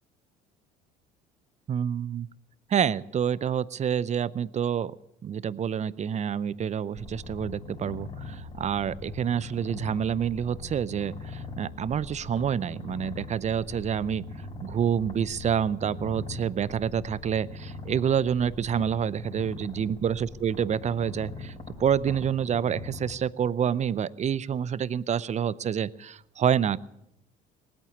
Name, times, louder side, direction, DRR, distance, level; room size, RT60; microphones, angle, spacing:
voice 1, 1.7-2.3 2.7-4.9 5.2-14.3 14.6-21.5 21.8-26.8, right 8 dB, 35° right, 19 dB, 0.6 m, -28 dB
Purr, 7.0-23.1, left 3 dB, 25° left, 4.1 m, -41 dB
19.0 x 8.8 x 8.5 m, 0.82 s
hypercardioid pair, 70°, 21 cm